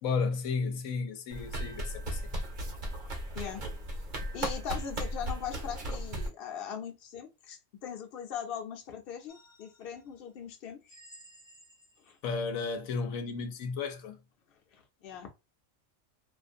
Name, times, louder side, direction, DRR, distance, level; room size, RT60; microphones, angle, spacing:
voice 1, 0.0-2.3 12.2-14.2, left 4 dB, 90° left, 1.0 m, -33 dB
sound 1, 1.3-6.3, right 1 dB, 45° right, 0.8 m, -36 dB
voice 2, 4.3-11.0 12.0-12.2 14.5-15.3, left 8 dB, 55° left, 0.8 m, -40 dB
sound 2, 9.3-10.1 10.9-12.3, equal, 5° left, 0.5 m, -56 dB
2.5 x 2.1 x 2.5 m
omnidirectional pair, 1.4 m